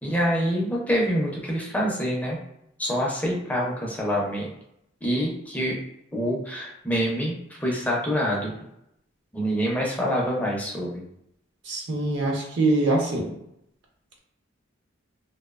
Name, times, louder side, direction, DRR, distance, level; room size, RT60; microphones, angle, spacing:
voice 1, 0.0-2.4 2.8-4.5 5.0-5.8 6.1-8.5 9.3-11.0, equal, 10° left, -3 dB, 0.4 m, -26 dB
voice 2, 11.7-13.3, right 2 dB, 65° right, -1 dB, 0.6 m, -24 dB
2.6 x 2.1 x 2.3 m, 0.79 s
head